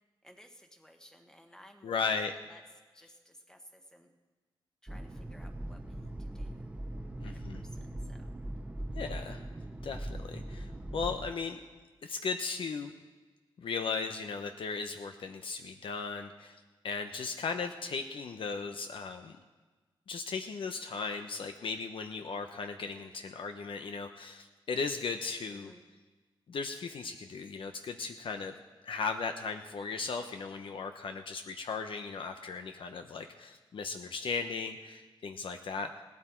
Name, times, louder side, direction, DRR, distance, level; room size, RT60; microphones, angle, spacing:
voice 1, 0.2-2.6 2.9-4.1 4.8-6.7 7.2-8.3 25.5-25.9, equal, 5° left, 5 dB, 1.3 m, -57 dB
voice 2, 1.8-2.3 7.2-7.6 8.9-9.4 9.8-11.6 12.0-12.9 13.6-19.3 20.1-25.7 26.5-28.5 28.8-35.9, left 4 dB, 70° left, 6 dB, 0.7 m, -37 dB
sound 1, 4.9-11.3, right 1 dB, 15° right, 0.7 m, -40 dB
17.0 x 12.0 x 4.5 m, 1.3 s
wide cardioid pair, 125°, 9 cm